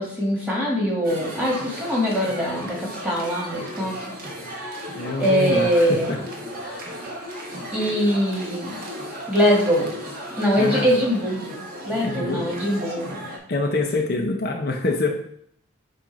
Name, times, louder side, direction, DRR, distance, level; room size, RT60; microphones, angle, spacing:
voice 1, 0.0-3.9 5.2-6.1 7.7-8.8 9.3-9.9 10.4-13.3, equal, 10° right, -4 dB, 1.6 m, -22 dB
sound 1, 1.0-13.4, equal, 45° right, 1.2 m, -35 dB
voice 2, 4.9-6.2 6.6-6.9 10.6-10.9 12.0-12.5 13.5-15.1, left 3 dB, 50° left, 2 dB, 0.6 m, -25 dB
7.4 x 2.5 x 5.1 m, 0.68 s
head